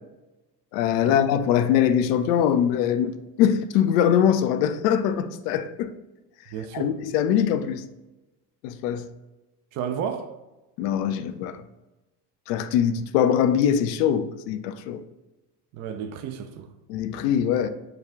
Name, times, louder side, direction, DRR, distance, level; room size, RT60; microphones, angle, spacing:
voice 1, 0.7-5.9 6.7-7.8 8.6-9.1 10.8-11.6 12.5-15.0 16.9-17.7, left 9 dB, 70° left, 0.6 m, -22 dB
voice 2, 6.5-7.0 9.7-10.4 15.7-16.7, right 8 dB, 35° right, 0.4 m, -32 dB
4.8 x 2.3 x 3.6 m
hypercardioid pair, 75°, 49 cm